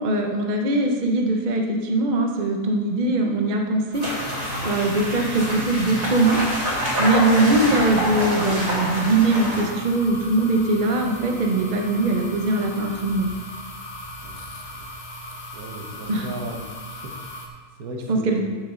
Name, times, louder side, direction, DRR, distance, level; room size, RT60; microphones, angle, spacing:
voice 1, 0.0-6.4 7.0-13.3 16.1-16.3 18.1-18.4, right 2 dB, 35° right, 2 dB, 0.9 m, -21 dB
sound 1, 3.9-17.5, left 1 dB, 35° left, 0.9 m, -38 dB
sound 2, 4.0-9.6, equal, 55° right, 3.8 m, -26 dB
voice 2, 15.5-16.6 16.9-18.4, right 1 dB, 70° right, 2 dB, 1.6 m, -37 dB
13.5 x 6.4 x 3.9 m, 1.5 s
omnidirectional pair, 1.7 m